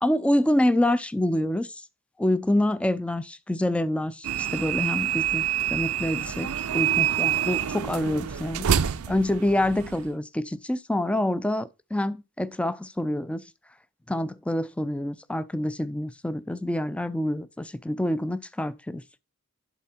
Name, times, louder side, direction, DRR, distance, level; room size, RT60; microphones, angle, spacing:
voice 1, 0.0-1.8 2.2-8.7 9.1-13.4 14.1-19.0, left 1 dB, 5° left, 0.3 m, -26 dB
sound 1, 4.2-10.1, right 9 dB, 80° right, 0.5 m, -27 dB
11.0 x 4.1 x 4.3 m
head